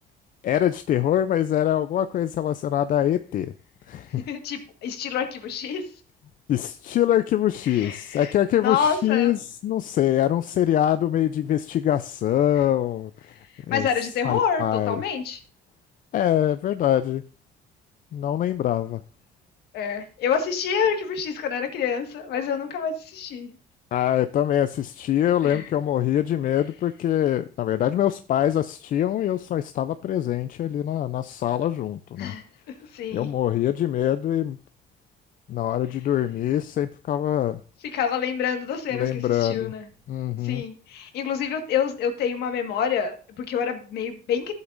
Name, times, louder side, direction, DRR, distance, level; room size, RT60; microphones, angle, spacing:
voice 1, 0.4-3.5 3.9-4.3 6.5-13.1 13.7-13.9 14.2-15.0 16.1-17.2 18.1-19.0 23.9-32.3 33.1-34.6 35.5-37.6 38.9-39.7 40.1-40.6, left 11 dB, 55° left, 0.5 m, -24 dB
voice 2, 4.3-6.0 7.6-8.3 8.6-9.4 12.5-12.6 13.3-15.4 19.7-23.6 25.4-25.7 32.2-32.4 32.9-33.3 37.8-39.9 40.4-44.5, left 7 dB, 75° left, 1.7 m, -27 dB
13.5 x 8.1 x 2.6 m
cardioid pair, 110°, 17 cm